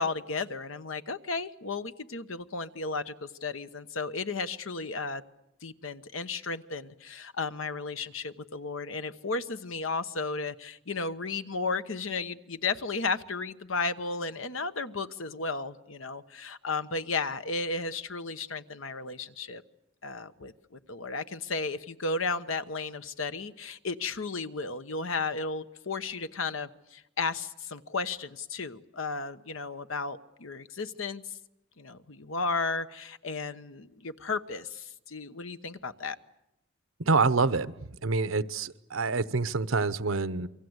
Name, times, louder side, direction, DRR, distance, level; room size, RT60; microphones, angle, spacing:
voice 1, 0.0-5.2 5.6-19.6 20.0-31.3 31.8-36.2, left 4 dB, 85° left, 11 dB, 1.1 m, -34 dB
voice 2, 37.0-40.5, right 4 dB, 85° right, 14 dB, 1.0 m, -27 dB
28.5 x 24.0 x 8.1 m, 0.85 s
head